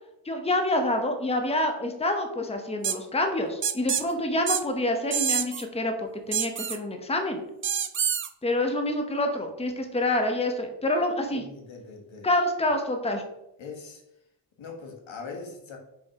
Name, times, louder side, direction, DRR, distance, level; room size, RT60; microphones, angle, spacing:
voice 1, 0.2-7.4 8.4-11.4 12.2-13.2, left 1 dB, 15° left, 5 dB, 0.9 m, -27 dB
sound 1, 2.8-3.0 3.6-4.0 4.5-4.6 5.1-5.6 6.3-6.8 7.6-8.3, right 7 dB, 30° right, 0.4 m, -26 dB
voice 2, 11.3-12.3 13.6-14.0 14.6-15.8, left 4 dB, 90° left, 2 dB, 1.6 m, -41 dB
5.4 x 4.8 x 4.8 m, 0.86 s
wide cardioid pair, 125°, 45 cm